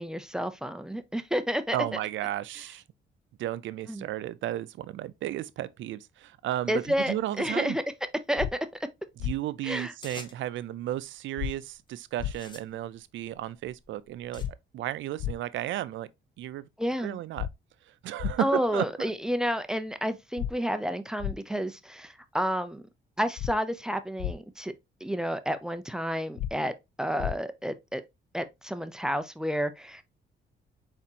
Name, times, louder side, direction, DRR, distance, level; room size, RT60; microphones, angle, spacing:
voice 1, 0.0-1.8 3.9-4.0 6.7-7.8 8.3-8.9 9.6-9.9 16.8-17.2 18.4-22.8 23.2-24.7 25.0-26.7 27.0-28.0 28.3-30.0, equal, 5° right, 0.6 m, -30 dB
voice 2, 1.7-2.8 3.4-7.8 9.2-14.4 14.7-16.1 16.4-16.7 17.0-17.5 17.9-19.1, right 13 dB, 75° right, 0.5 m, -33 dB
sound 1, 8.4-8.5 9.2-9.3 11.4-11.5 12.2-12.3 14.4-14.5 15.2-15.3 17.4-17.5 18.2-18.3 20.4-20.5 21.2-21.3 23.4-23.5 24.2-24.3 26.4-26.5 27.2-27.3, left 12 dB, 75° left, 0.5 m, -31 dB
sound 2, 10.0-10.6 11.4-11.7 12.2-14.5, left 2 dB, 25° left, 1.0 m, -49 dB
4.2 x 4.2 x 2.8 m
cardioid pair, 90°, 20 cm